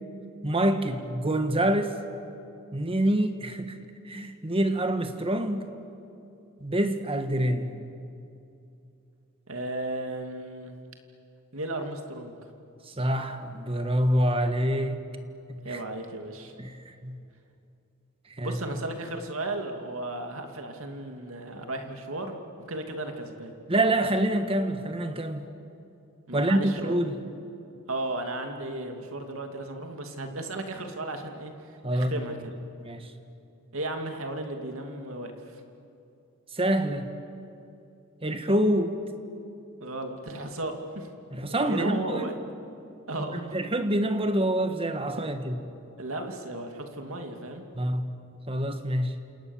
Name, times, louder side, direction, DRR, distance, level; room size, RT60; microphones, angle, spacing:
voice 1, 0.4-1.9 2.7-3.8 4.0-5.7 6.6-7.8 12.9-15.0 15.5-15.8 16.6-17.2 18.3-18.6 23.7-25.5 26.3-27.2 31.8-32.1 32.8-33.1 36.5-37.1 38.2-39.0 41.3-42.3 43.5-45.6 47.7-48.1 48.5-49.1, right 1 dB, 25° right, 8 dB, 1.6 m, -26 dB
voice 2, 9.5-10.8 11.5-12.4 15.6-16.5 18.4-22.4 22.7-23.5 26.3-27.0 27.9-32.5 33.7-35.6 39.8-41.1 41.5-42.3 43.1-43.6 46.0-47.6, right 2 dB, 65° right, 4 dB, 2.7 m, -35 dB
28.5 x 28.0 x 7.4 m, 2.7 s
head